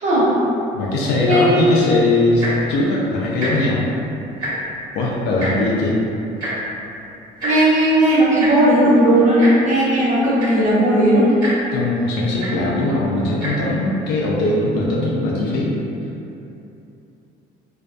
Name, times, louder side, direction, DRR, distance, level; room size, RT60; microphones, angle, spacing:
voice 1, 0.0-0.4 1.2-1.4 7.4-11.4, right 1 dB, 45° right, -7 dB, 0.8 m, -15 dB
voice 2, 0.7-3.9 4.9-6.0 11.7-15.8, left 2 dB, 85° left, -4 dB, 0.4 m, -20 dB
Tick-tock, 2.3-2.7 3.3-3.5 3.8-4.0 4.2-4.8 5.4-5.5 6.4-6.5 7.4-7.5 8.4-8.5 9.4-9.5 10.1-10.2 10.4-10.7 11.4-11.5 12.4-12.5 13.3-13.5 14.2-14.3, right 1 dB, 25° right, 1.1 m, -27 dB
2.5 x 2.2 x 2.2 m, 2.7 s
cardioid pair, 110°, 17 cm